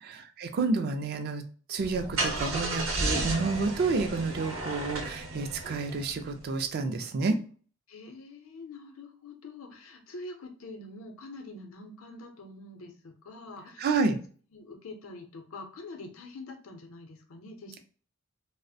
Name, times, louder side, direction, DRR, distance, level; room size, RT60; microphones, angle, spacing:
voice 1, 0.0-1.4 1.7-7.3 13.8-14.2, right 4 dB, 50° right, 6 dB, 0.3 m, -29 dB
Car / Engine starting, 1.8-6.4, right 2 dB, 75° right, 0.7 m, -33 dB
voice 2, 7.9-14.1 14.5-17.8, left 2 dB, 85° left, 4 dB, 0.6 m, -45 dB
2.3 x 2.0 x 2.6 m, 0.41 s
head